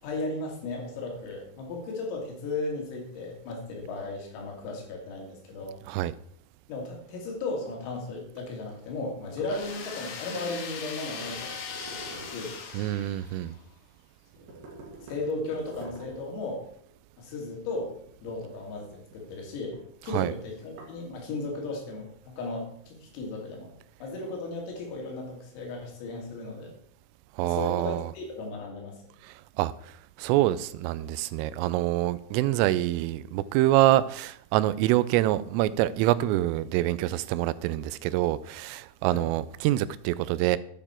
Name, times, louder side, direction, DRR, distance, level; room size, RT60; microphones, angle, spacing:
voice 1, 0.0-5.8 6.7-11.6 11.9-12.6 15.0-16.6 17.2-17.9 18.2-19.8 20.0-23.7 24.0-26.7 27.4-29.0 39.1-39.3, left 2 dB, 85° left, 5.3 m, -35 dB
sound 1, 8.3-13.8 14.2-21.1, right 3 dB, 50° right, 3.2 m, -50 dB
sound 2, 9.5-13.6, left 6 dB, 60° left, 2.5 m, -39 dB
voice 2, 12.7-13.6 20.1-20.3 27.4-28.1 29.2-40.6, right 15 dB, 85° right, 3.1 m, -26 dB
12.0 x 9.0 x 4.4 m
omnidirectional pair, 5.9 m